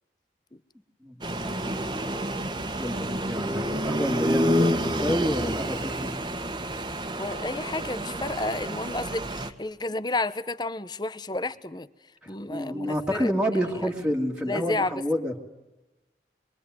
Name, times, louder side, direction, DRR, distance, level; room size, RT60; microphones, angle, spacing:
voice 1, 1.0-2.1 2.8-6.1 12.2-15.3, equal, 5° right, 0 dB, 2.4 m, -29 dB
sound 1, 1.2-9.5, equal, 25° right, 1.8 m, -29 dB
voice 2, 7.2-11.9 12.3-13.3 14.5-14.9, left 2 dB, 25° left, 14 dB, 0.9 m, -31 dB
25.5 x 23.5 x 9.5 m, 1.0 s
head